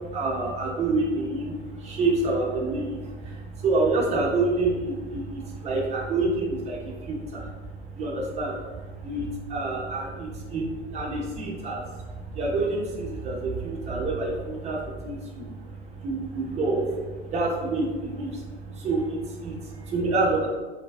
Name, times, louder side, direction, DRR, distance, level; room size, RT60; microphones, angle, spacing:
voice 1, 0.0-20.5, right 2 dB, 20° right, -3 dB, 0.7 m, -28 dB
4.1 x 2.3 x 2.3 m, 1.3 s
figure-of-eight pair, 90°, 35 cm